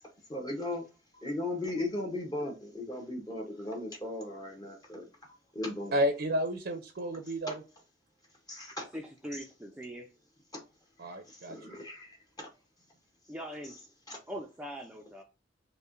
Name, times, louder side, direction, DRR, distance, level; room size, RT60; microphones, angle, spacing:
voice 1, 0.3-0.8 1.2-5.1 5.5-6.0 7.5-7.6 8.5-8.9 11.5-12.5 14.1-14.2, left 2 dB, 20° left, 0.7 m, -37 dB
voice 2, 5.9-7.6 11.0-11.8, equal, 60° right, 0.6 m, -31 dB
voice 3, 8.9-10.1 13.3-13.8 14.3-15.2, equal, 5° right, 0.4 m, -42 dB
5.3 x 2.1 x 2.4 m
head